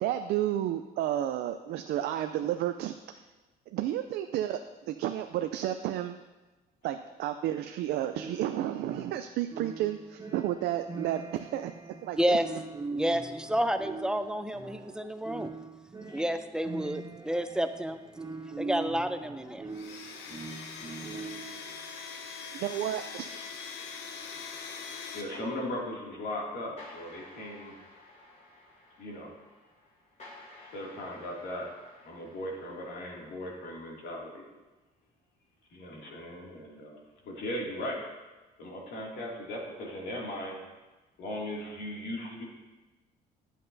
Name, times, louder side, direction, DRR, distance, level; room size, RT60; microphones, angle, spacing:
voice 1, 0.0-3.2 3.7-4.6 4.9-6.2 6.8-11.7 12.0-12.4 22.5-23.3, right 12 dB, 75° right, 8 dB, 0.4 m, -31 dB
sound 1, 8.1-21.7, right 4 dB, 20° right, 0.8 m, -42 dB
voice 2, 12.9-15.5 16.1-18.0 18.6-19.8, equal, 5° right, 9 dB, 0.4 m, -30 dB
Domestic sounds home sounds, 19.7-25.2, left 5 dB, 90° left, 0.9 m, -42 dB
voice 3, 25.1-27.7 29.0-29.3 30.6-31.7 32.0-34.5 35.7-38.0 38.6-40.6 41.2-42.4, left 1 dB, 70° left, -3 dB, 2.4 m, -38 dB
sound 2, 26.8-33.6, left 2 dB, 45° left, 2.9 m, -54 dB
10.0 x 7.5 x 2.7 m, 1.2 s
cardioid pair, 110°, 17 cm